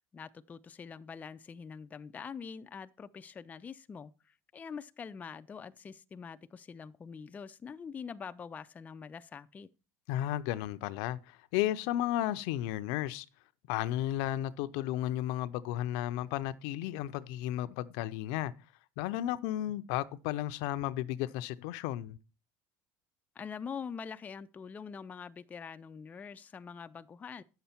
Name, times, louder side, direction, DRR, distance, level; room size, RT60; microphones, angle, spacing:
voice 1, 0.0-9.7 23.4-27.4, left 6 dB, 20° left, 0.4 m, -44 dB
voice 2, 10.1-13.3 13.7-18.5 19.0-22.2, left 13 dB, 75° left, 0.6 m, -33 dB
9.4 x 6.9 x 4.3 m
cardioid pair, 130°, 8 cm